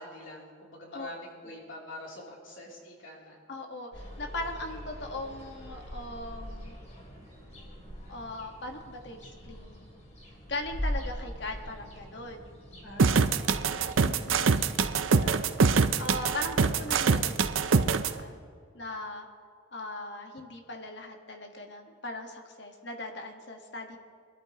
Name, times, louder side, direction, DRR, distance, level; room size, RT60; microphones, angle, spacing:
voice 1, 0.0-3.4 12.8-14.3, left 1 dB, 75° left, -3 dB, 3.1 m, -45 dB
voice 2, 3.5-6.8 8.1-9.2 9.4-9.9 10.5-12.6 14.0-14.5 15.1-15.5 16.0-18.4 18.7-19.3 19.7-24.0, left 2 dB, 60° left, 3 dB, 1.5 m, -39 dB
sound 1, 3.9-17.2, equal, 35° left, 2.6 m, -42 dB
sound 2, 13.0-18.1, right 5 dB, 85° right, 0.6 m, -24 dB
22.5 x 12.5 x 2.9 m, 2.2 s
head